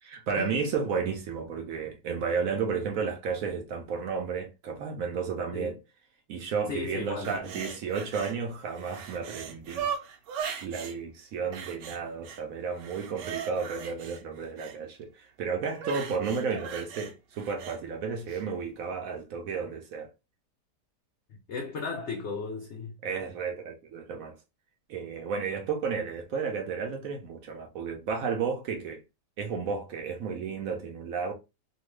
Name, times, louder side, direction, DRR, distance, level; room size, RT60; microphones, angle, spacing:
voice 1, 0.0-5.8 6.3-9.9 10.6-20.1 23.0-24.3 24.9-29.0 29.4-31.3, right 5 dB, 70° right, 0.9 m, -32 dB
voice 2, 6.7-7.7 21.3-23.0, left 4 dB, 85° left, 0.6 m, -36 dB
sound 1, 7.2-8.4 8.7-11.0 11.5-12.4 12.8-14.8 15.8-17.8 18.3-18.4, right 7 dB, 85° right, 1.2 m, -38 dB
2.9 x 2.2 x 3.1 m
omnidirectional pair, 1.8 m